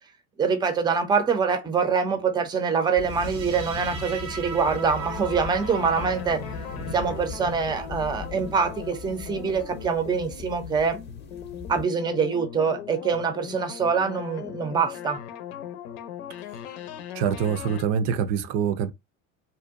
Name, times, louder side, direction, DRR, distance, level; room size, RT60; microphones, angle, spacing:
voice 1, 0.4-6.4 6.9-11.0 11.7-15.2, right 5 dB, 10° right, 0.5 m, -25 dB
sound 1, 3.0-11.8, left 3 dB, 25° left, 0.7 m, -38 dB
sound 2, 3.0-10.1, right 6 dB, 90° right, 0.8 m, -42 dB
sound 3, 4.6-17.8, left 9 dB, 75° left, 0.7 m, -39 dB
voice 2, 17.1-18.9, right 7 dB, 60° right, 0.5 m, -25 dB
2.6 x 2.1 x 2.5 m
hypercardioid pair, 85°, 39 cm